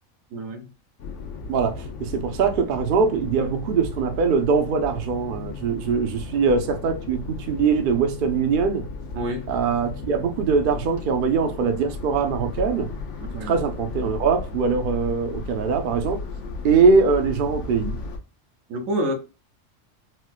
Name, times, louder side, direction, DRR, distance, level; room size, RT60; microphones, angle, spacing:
voice 1, 0.3-0.7 9.1-9.5 13.2-13.6 18.7-19.1, equal, 85° right, 1.2 m, -28 dB
sound 1, 1.0-18.2, left 4 dB, 70° left, 0.9 m, -35 dB
voice 2, 1.5-8.9 9.5-12.9 13.3-16.2 16.6-18.0, right 5 dB, 55° right, 0.6 m, -22 dB
4.3 x 2.1 x 2.3 m
omnidirectional pair, 1.3 m